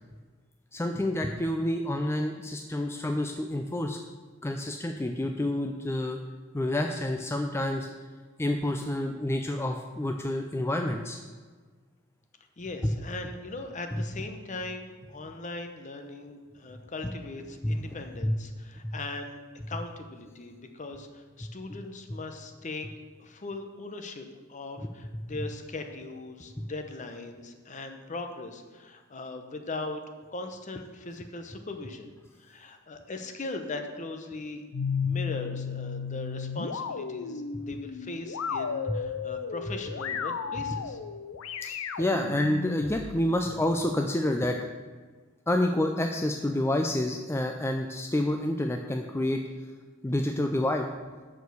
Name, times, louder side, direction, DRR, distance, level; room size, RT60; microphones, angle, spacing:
voice 1, 0.7-4.0 4.4-6.2 6.5-7.9 8.4-11.2 12.8-12.9 13.9-14.0 17.6-18.0 18.2-18.4 18.8-18.9 26.6-26.7 38.9-39.0 41.6-44.6 45.5-49.4 50.0-50.9, left 1 dB, 10° left, 4 dB, 0.4 m, -28 dB
voice 2, 12.6-19.4 19.7-22.9 23.2-30.0 30.3-32.1 32.4-34.7 35.0-41.0, left 2 dB, 35° left, 6 dB, 0.9 m, -39 dB
sound 1, 34.7-43.3, left 6 dB, 90° left, 0.5 m, -34 dB
7.0 x 6.3 x 6.9 m, 1.4 s
head